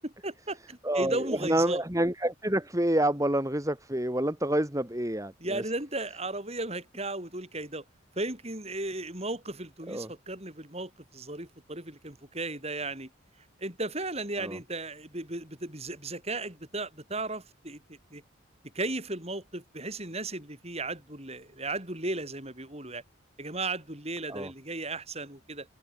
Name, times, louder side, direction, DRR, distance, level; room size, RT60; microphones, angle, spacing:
voice 1, 0.0-1.8 5.4-7.8 8.2-13.1 13.6-18.2 18.7-23.0 23.4-25.7, right 2 dB, 30° right, 7.7 m, -35 dB
voice 2, 0.8-5.6 9.9-10.1 14.4-14.6 24.3-24.5, right 1 dB, 15° right, 3.4 m, -28 dB
head